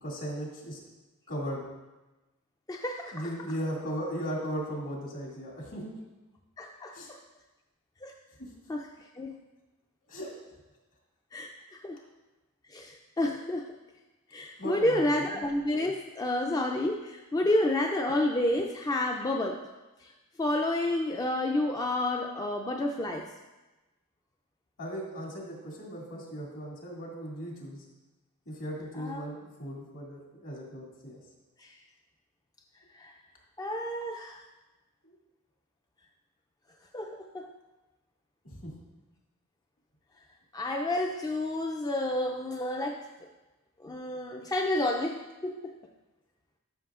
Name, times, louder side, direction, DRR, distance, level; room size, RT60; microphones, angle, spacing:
voice 1, 0.0-0.8 1.3-1.6 3.1-5.9 6.9-7.1 10.1-10.3 14.6-15.4 17.4-17.5 24.8-27.8 28.5-31.2 35.0-35.1 38.5-38.7, equal, 65° left, -3 dB, 2.3 m, -37 dB
voice 2, 2.7-3.3 6.6-7.2 8.0-8.1 8.7-8.9 9.2-9.3 11.3-11.5 11.8-12.0 12.7-13.7 14.3-19.6 20.4-23.3 28.9-29.2 31.6-31.7 32.9-33.1 33.6-34.4 36.9-37.5 40.5-43.0 43.8-45.7, left 1 dB, 15° left, 2 dB, 0.4 m, -30 dB
12.5 x 6.2 x 2.4 m, 1.1 s
head